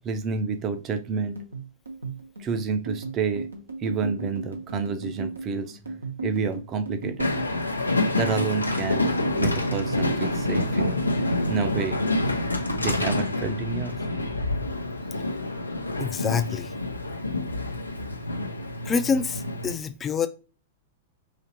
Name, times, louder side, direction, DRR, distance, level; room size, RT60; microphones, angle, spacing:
voice 1, 0.0-1.4 2.4-3.5 3.8-5.8 6.2-7.3 8.1-9.1 9.4-11.0 11.5-12.0 12.7-14.0, right 5 dB, 30° right, 0.6 m, -29 dB
sound 1, 1.4-13.8 14.0-15.1 15.4-15.7 16.0-16.7, right 3 dB, 85° right, 1.0 m, -36 dB
Train, 7.2-19.7, left 2 dB, 90° left, 0.5 m, -27 dB
voice 2, 16.0-16.7 18.9-20.3, left 6 dB, 20° left, 0.5 m, -26 dB
5.0 x 2.8 x 2.8 m
figure-of-eight pair, 100°, 0 cm